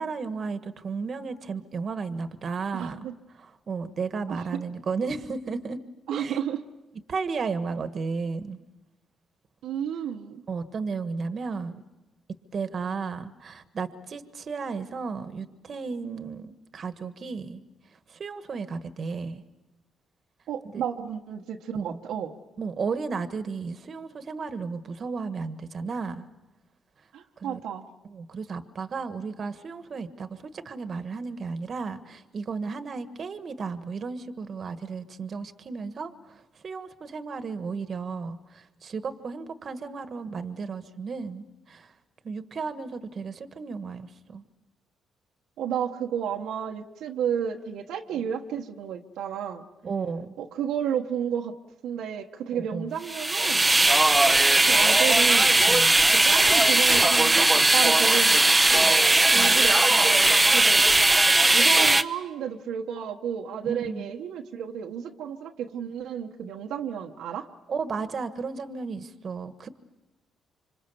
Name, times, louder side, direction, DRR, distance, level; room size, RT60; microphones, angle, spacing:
voice 1, 0.0-3.0 3.3-5.8 6.1-6.4 7.1-8.6 10.5-11.8 12.5-17.6 18.1-19.4 20.7-20.8 21.7-22.0 22.6-26.3 27.4-27.6 28.1-41.9 42.2-44.4 48.2-48.3 49.8-50.3 52.5-52.9 55.7-56.0 59.3-59.6 63.6-64.1 67.7-69.7, right 5 dB, 50° right, 10 dB, 1.5 m, -34 dB
voice 2, 2.7-3.1 4.3-4.6 6.1-6.6 9.6-10.4 20.5-22.4 27.1-27.9 45.6-49.6 50.4-51.5 51.8-54.4 54.7-55.5 56.2-59.0 59.3-60.8 61.5-67.5, right 8 dB, 85° right, 2 dB, 1.2 m, -32 dB
sound 1, 53.1-62.0, right 2 dB, 15° right, 0.8 m, -19 dB
26.5 x 25.5 x 7.0 m, 1.1 s
cardioid pair, 90°, 0 cm